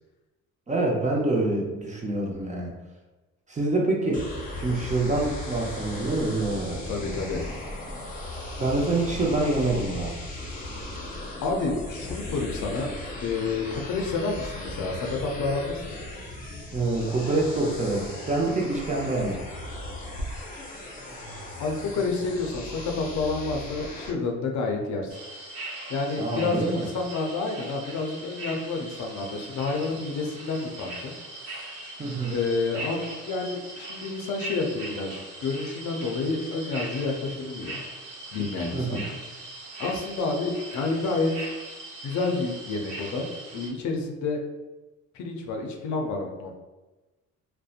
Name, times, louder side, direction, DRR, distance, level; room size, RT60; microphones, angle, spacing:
voice 1, 0.7-2.7 3.5-4.2 4.6-6.8 8.6-10.1 16.7-19.4 26.2-26.9 32.0-32.3 38.7-39.0, right 2 dB, 25° right, -1 dB, 0.6 m, -26 dB
sound 1, 4.1-24.1, left 1 dB, 25° left, 0.6 m, -37 dB
voice 2, 6.9-7.4 11.4-12.9 13.2-16.0 21.6-25.2 25.9-31.1 32.3-37.8 38.3-39.1 39.8-41.5 42.0-43.3 43.5-44.4 45.1-46.5, left 3 dB, 70° left, 2 dB, 0.5 m, -29 dB
sound 2, 25.1-43.7, right 2 dB, 85° right, 0.8 m, -40 dB
2.7 x 2.1 x 2.4 m, 1.1 s
cardioid pair, 90°, 30 cm